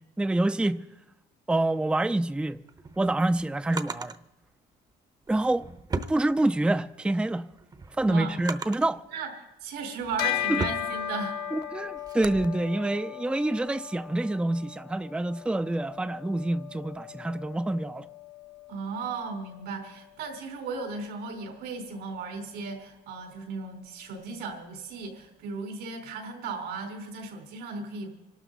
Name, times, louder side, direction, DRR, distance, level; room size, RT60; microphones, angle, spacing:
voice 1, 0.2-0.8 1.5-2.6 3.0-4.1 5.3-5.7 6.1-7.4 8.0-9.0 10.5-10.6 11.5-18.1, right 2 dB, 5° right, 0.5 m, -27 dB
Drawer open or close, 2.5-4.2 5.2-6.9 7.3-9.0 9.6-12.5, right 3 dB, 25° right, 0.9 m, -38 dB
voice 2, 8.0-8.4 9.1-9.3 9.6-11.4 18.7-28.1, right 4 dB, 85° right, 4.4 m, -36 dB
Bell, 10.2-19.9, left 11 dB, 70° left, 1.3 m, -37 dB
25.5 x 12.5 x 4.1 m
cardioid pair, 110°, 17 cm